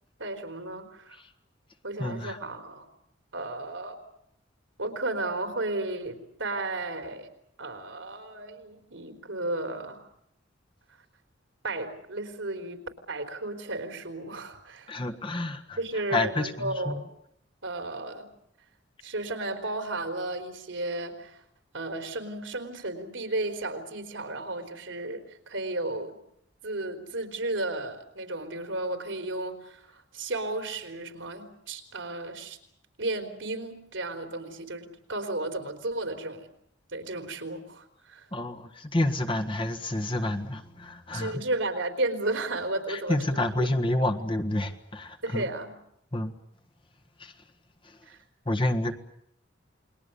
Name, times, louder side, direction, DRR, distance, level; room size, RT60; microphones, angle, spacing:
voice 1, 0.2-1.2 1.8-2.9 3.3-4.0 4.8-7.3 7.6-10.0 11.6-15.0 15.8-17.0 17.6-18.3 19.0-21.4 21.7-26.2 26.6-32.6 33.0-36.5 36.9-38.3 41.1-43.7 45.2-45.7 48.1-48.2, right 2 dB, 85° right, 6 dB, 3.8 m, -33 dB
voice 2, 2.0-2.4 14.9-15.8 16.1-17.0 38.3-41.4 42.9-45.5 46.1-46.3 47.2-47.3 47.8-48.0 48.4-48.9, left 1 dB, 25° left, 5 dB, 1.5 m, -29 dB
29.0 x 21.5 x 6.9 m, 0.75 s
head